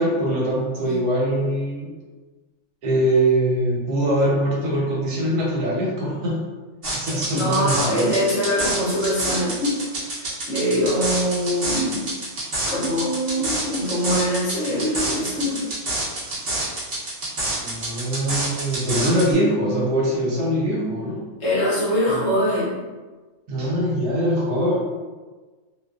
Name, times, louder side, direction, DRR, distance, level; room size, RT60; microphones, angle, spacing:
voice 1, 0.0-1.9 2.8-6.5 6.9-8.2 17.6-21.2 23.5-24.8, right 1 dB, 75° right, -4 dB, 1.2 m, -22 dB
sound 1, 6.8-19.3, right 1 dB, 50° right, 0.8 m, -28 dB
voice 2, 7.3-12.1 12.7-15.7 21.4-22.8, equal, 60° left, -6 dB, 1.0 m, -23 dB
2.6 x 2.3 x 2.3 m, 1.3 s
omnidirectional pair, 1.7 m